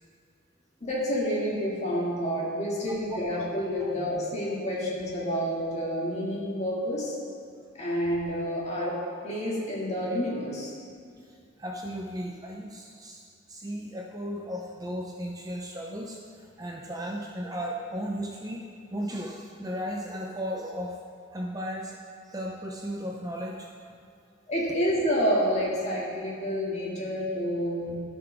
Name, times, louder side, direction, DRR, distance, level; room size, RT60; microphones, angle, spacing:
voice 1, 0.8-7.1 7.8-9.0 9.2-10.7 24.5-28.0, equal, 35° left, -5 dB, 2.0 m, -29 dB
voice 2, 11.2-13.2 13.5-18.6 18.9-20.9 21.3-22.0 22.2-23.7, equal, 20° right, -1 dB, 0.5 m, -35 dB
14.0 x 5.9 x 3.4 m, 2.4 s
head